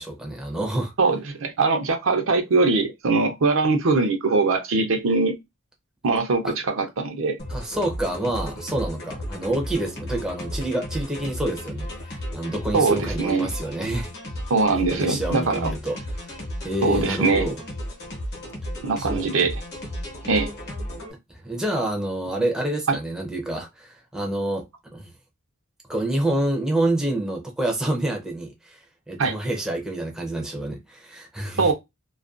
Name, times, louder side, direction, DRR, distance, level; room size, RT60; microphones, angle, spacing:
voice 1, 0.0-0.9 6.4-6.5 7.5-11.9 12.3-14.1 14.7-16.3 16.6-17.6 19.0-19.3 21.3-24.7 24.9-25.1 25.9-28.8 29.1-31.7, right 1 dB, 5° right, 0.5 m, -27 dB
voice 2, 1.0-5.4 6.0-7.4 12.7-13.5 14.5-15.7 16.8-17.5 18.8-19.5 20.3-20.5 22.9-23.0 29.2-29.4 31.6-31.7, right 3 dB, 70° right, 0.6 m, -22 dB
sound 1, 7.4-21.1, equal, 50° left, 0.8 m, -34 dB
2.3 x 2.2 x 2.4 m
head